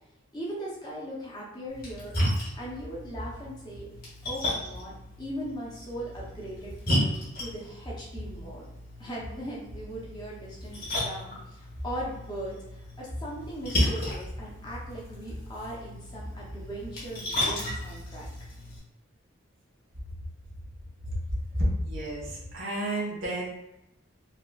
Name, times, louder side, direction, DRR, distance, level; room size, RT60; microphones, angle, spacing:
voice 1, 0.3-2.1 2.6-3.9 4.2-7.1 7.4-8.6 9.0-18.3, equal, 20° left, -5 dB, 0.7 m, -39 dB
Splash splatter, 1.7-18.8, left 1 dB, 45° left, 1.4 m, -34 dB
voice 2, 21.5-23.5, equal, 85° right, -6 dB, 1.5 m, -30 dB
4.2 x 2.3 x 2.3 m, 0.88 s
head